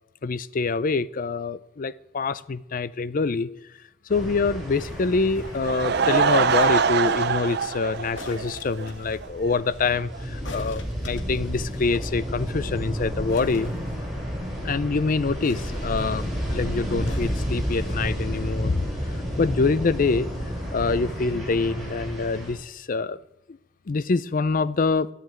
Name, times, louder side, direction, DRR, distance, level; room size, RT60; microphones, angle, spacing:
voice 1, 0.2-3.5 4.1-13.7 14.6-18.8 19.4-20.3 20.7-23.2 23.5-23.6 23.9-25.1, left 4 dB, 45° left, 0.4 m, -25 dB
sound 1, 4.1-22.5, equal, ahead, 6.5 m, -32 dB
sound 2, 4.7-5.8 6.5-7.2 8.1-9.3 10.4-12.1 12.4-12.5 12.7-12.9 13.3-14.5 15.4-16.3 17.1-18.0 18.8-18.9, left 2 dB, 65° left, 1.8 m, -46 dB
Laughter / Crowd, 5.4-8.9 9.2-9.3 9.9-10.0 10.1-10.2, right 6 dB, 55° right, 0.6 m, -23 dB
12.0 x 10.0 x 8.7 m
head